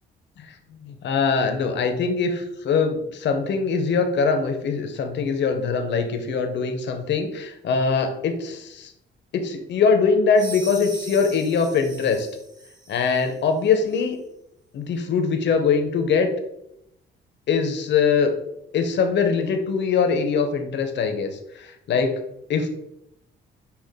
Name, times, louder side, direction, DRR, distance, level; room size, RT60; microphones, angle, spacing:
voice 1, 0.8-8.9 9.3-12.3 12.9-14.2 14.7-16.3 17.5-18.3 18.7-22.1 22.5-22.7, left 5 dB, 65° left, 6 dB, 0.8 m, -22 dB
sound 1, 10.3-13.3, right 2 dB, 20° right, 0.8 m, -40 dB
5.6 x 2.4 x 3.6 m, 0.81 s
cardioid pair, 90°, 20 cm